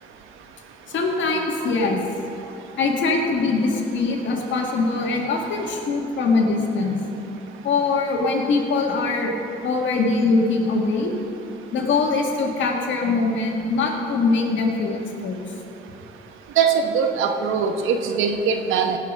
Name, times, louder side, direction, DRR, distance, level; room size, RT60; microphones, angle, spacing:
voice 1, 0.9-2.0 2.8-7.0 7.6-9.3 9.6-11.1 11.7-15.4, left 3 dB, 70° left, 1 dB, 1.9 m, -22 dB
voice 2, 16.6-19.0, right 6 dB, 85° right, 6 dB, 1.1 m, -21 dB
17.5 x 6.0 x 6.2 m, 2.9 s
cardioid pair, 90°, 20 cm